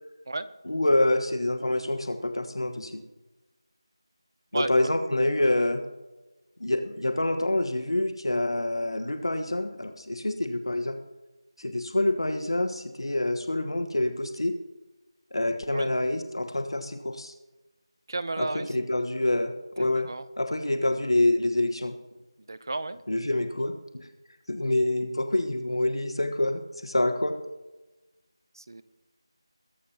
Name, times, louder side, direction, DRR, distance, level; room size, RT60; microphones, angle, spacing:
voice 1, 0.7-3.0 4.5-5.8 6.6-11.0 11.6-14.5 15.3-17.3 18.4-20.1 20.4-21.9 23.1-23.7 24.5-27.3, left 1 dB, 75° left, 7 dB, 1.3 m, -26 dB
voice 2, 4.5-4.9 15.7-15.9 18.1-18.7 20.0-20.3 22.5-23.0 28.6-28.8, right 2 dB, 45° right, 14 dB, 0.7 m, -33 dB
21.5 x 11.0 x 2.9 m, 1.1 s
figure-of-eight pair, 170°, 3 cm